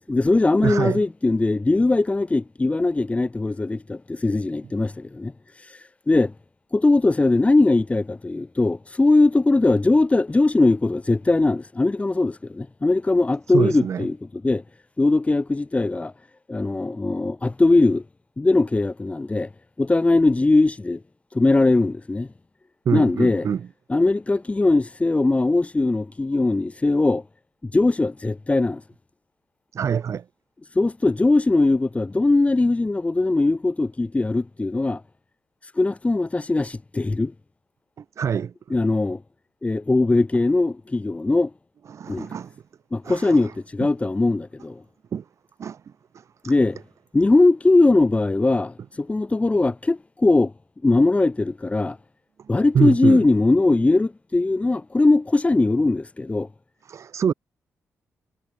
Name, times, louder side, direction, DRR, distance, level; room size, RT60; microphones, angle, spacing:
voice 1, 0.1-6.3 6.7-14.6 15.0-16.1 16.5-18.0 18.4-19.5 19.8-21.0 21.3-22.3 22.9-23.5 23.9-27.2 27.6-28.8 30.7-35.0 35.6-37.3 38.7-39.2 39.6-41.5 42.1-42.3 42.9-44.8 46.4-46.8 47.1-50.5 50.8-52.0 52.5-56.5, left 2 dB, 25° left, 6.7 m, -20 dB
voice 2, 0.6-1.0 13.5-14.1 22.8-23.6 29.7-30.2 38.2-38.5 41.9-42.5 43.0-43.4 43.8-43.9 45.1-45.2 45.6-45.8 52.7-53.2 56.9-57.3, right 7 dB, 65° right, 2.9 m, -24 dB
cardioid pair, 75°, 6 cm